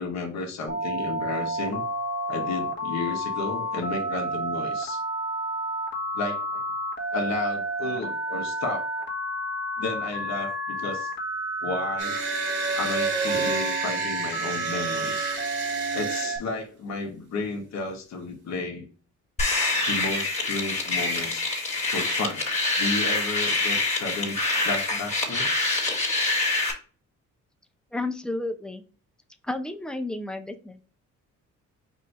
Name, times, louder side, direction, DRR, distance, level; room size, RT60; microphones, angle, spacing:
voice 1, 0.0-1.8 2.3-5.0 6.1-6.6 7.1-9.1 9.8-11.1 11.6-12.2 12.7-15.4 15.9-18.9 19.8-21.5 21.9-22.5 22.8-25.5, left 3 dB, 65° left, 2 dB, 1.4 m, -32 dB
Telephone, 0.7-16.4, right 1 dB, 40° left, 1.6 m, -31 dB
sound 1, 12.0-16.4, right 3 dB, 75° right, 1.8 m, -30 dB
sound 2, 19.4-26.7, left 3 dB, 20° left, 2.0 m, -26 dB
voice 2, 27.9-28.8 29.4-30.8, left 2 dB, 5° left, 6 dB, 0.6 m, -32 dB
5.3 x 2.7 x 3.3 m, 0.39 s
cardioid pair, 90°, 30 cm